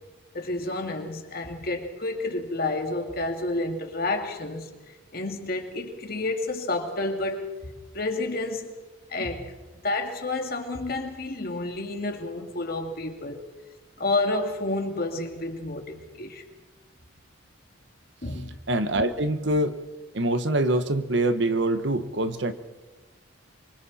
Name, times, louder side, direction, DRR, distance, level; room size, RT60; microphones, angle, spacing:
voice 1, 0.3-4.7 5.1-7.5 7.9-8.7 9.1-9.5 9.8-13.4 14.0-16.4 18.2-18.6, left 2 dB, 45° left, 2.5 m, -30 dB
voice 2, 18.7-19.8 20.1-22.5, right 1 dB, 60° right, 1.2 m, -25 dB
26.5 x 24.5 x 4.3 m
head